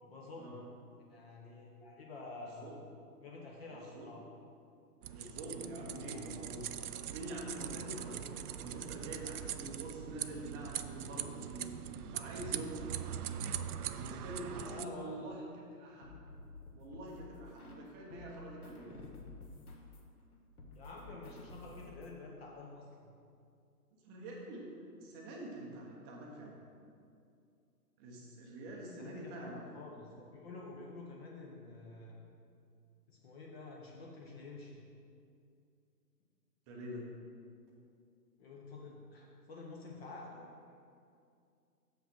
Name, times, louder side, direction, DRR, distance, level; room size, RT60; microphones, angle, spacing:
voice 1, 0.0-0.7 1.1-2.7 3.2-4.2 5.9-6.4 14.6-15.4 20.7-23.1 29.0-32.3 33.1-34.8 38.4-40.5, left 3 dB, 40° left, -2 dB, 1.1 m, -49 dB
voice 2, 2.4-2.8 3.7-4.2 5.1-6.6 7.1-8.3 8.6-12.8 13.9-16.1 16.7-19.0 24.0-26.6 28.0-29.8 36.7-37.0, right 1 dB, 15° right, -2 dB, 0.7 m, -46 dB
sound 1, 5.0-14.8, right 9 dB, 70° right, 0.5 m, -42 dB
sound 2, 16.0-17.8 18.1-22.1, left 2 dB, 65° left, 1.6 m, -52 dB
7.1 x 5.6 x 6.0 m, 2.4 s
hypercardioid pair, 140°, 47 cm